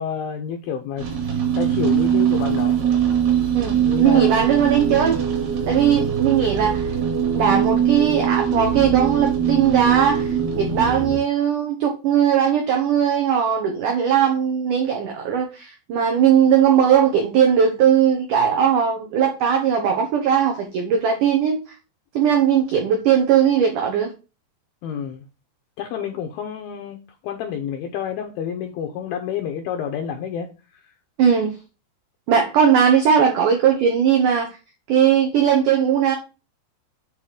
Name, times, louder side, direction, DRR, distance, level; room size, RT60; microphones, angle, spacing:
voice 1, 0.0-2.8 3.8-4.5 24.8-25.2 25.8-27.0 27.2-30.9, left 8 dB, 80° left, 2.2 m, -29 dB
sound 1, 1.0-11.2, right 8 dB, 65° right, 3.8 m, -22 dB
voice 2, 3.6-5.2 5.7-6.9 7.3-21.6 22.2-24.1 31.2-31.6 32.3-34.5 34.9-36.2, right 8 dB, 85° right, 1.8 m, -19 dB
8.3 x 3.1 x 4.8 m
omnidirectional pair, 4.9 m